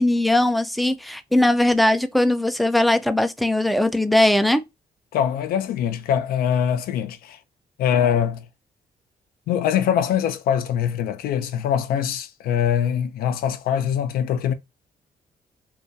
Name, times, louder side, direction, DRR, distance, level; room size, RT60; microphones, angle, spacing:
voice 1, 0.0-4.6, left 1 dB, ahead, 0.3 m, -19 dB
voice 2, 5.1-7.4 7.8-8.4 9.5-14.5, left 9 dB, 85° left, 0.4 m, -23 dB
2.3 x 2.2 x 2.6 m
cardioid pair, 95°, 15 cm